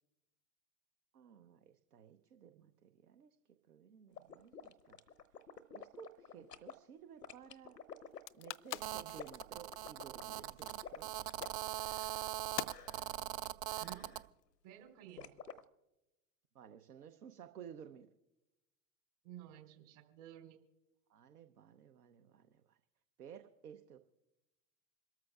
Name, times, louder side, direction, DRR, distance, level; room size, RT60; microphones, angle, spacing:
voice 1, 1.1-3.4 3.7-5.0 5.7-7.8 8.3-11.1 16.5-18.1 21.1-22.8 23.2-24.0, right 8 dB, 75° right, 8 dB, 0.9 m, -55 dB
sound 1, 4.2-6.7 7.2-12.4 12.6-13.1 13.7-14.2 15.2-15.6, left 7 dB, 90° left, 0.9 m, -51 dB
sound 2, 8.1-14.4, left 15 dB, 50° left, 0.5 m, -47 dB
Telephone, 8.8-14.2, right 13 dB, 40° right, 0.4 m, -41 dB
voice 2, 14.6-15.3 19.2-20.6, right 12 dB, 55° right, 3 dB, 3.7 m, -53 dB
27.0 x 13.5 x 2.4 m, 0.96 s
figure-of-eight pair, 90°, 47 cm